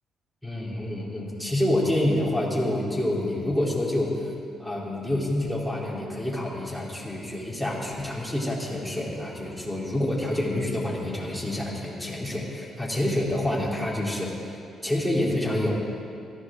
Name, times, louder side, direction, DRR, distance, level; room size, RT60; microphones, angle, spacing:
voice 1, 0.4-4.3 4.6-14.5 14.8-15.8, left 1 dB, ahead, -5 dB, 3.4 m, -27 dB
17.5 x 14.5 x 3.8 m, 2.4 s
cardioid pair, 90°, 0 cm